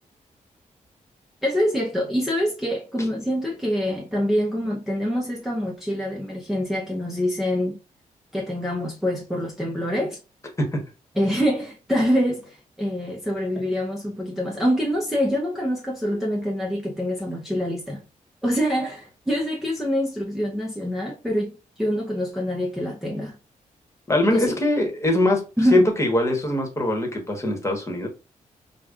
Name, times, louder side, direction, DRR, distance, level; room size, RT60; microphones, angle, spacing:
voice 1, 1.4-7.8 8.3-10.2 11.1-18.0 18.4-23.4 24.3-24.6 25.6-25.9, equal, ahead, 0.7 m, -25 dB
voice 2, 24.1-25.4 25.7-28.1, left 1 dB, 20° left, 1.3 m, -22 dB
5.1 x 2.3 x 2.4 m
cardioid pair, 95°, 14 cm